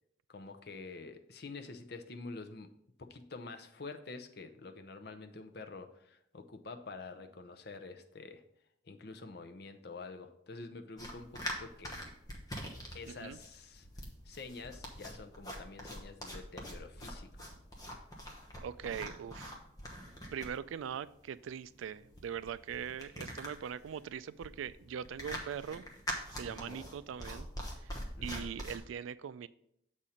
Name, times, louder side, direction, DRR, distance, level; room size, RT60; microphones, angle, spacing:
voice 1, 0.3-2.7 3.0-8.4 8.8-12.0 12.9-17.5 26.4-26.8 28.2-28.5, left 3 dB, 55° left, 6 dB, 0.6 m, -47 dB
sound 1, 11.0-28.8, equal, 20° left, 1.0 m, -44 dB
voice 2, 13.1-13.4 18.6-19.6 20.3-25.8 26.3-27.5 27.8-27.9 28.2-29.5, right 8 dB, 85° right, 17 dB, 0.3 m, -41 dB
7.2 x 4.3 x 5.0 m, 0.75 s
head